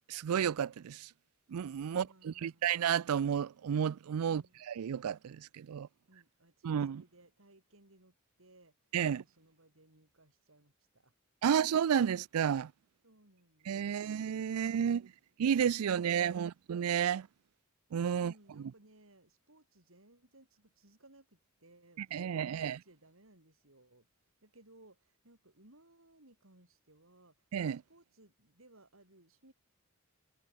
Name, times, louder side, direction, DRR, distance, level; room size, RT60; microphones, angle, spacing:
voice 1, 0.1-1.1 1.5-4.4 4.8-5.9 6.6-7.0 8.9-9.2 11.4-12.7 13.7-15.1 15.4-17.3 17.9-18.3 22.1-22.8 27.5-27.8, right 8 dB, 85° right, 0.4 m, -31 dB
voice 2, 1.9-2.8 4.3-4.6 6.1-11.1 13.0-14.2 14.5-15.2 18.1-27.5 27.9-29.5, right 1 dB, 65° right, 5.1 m, -63 dB
head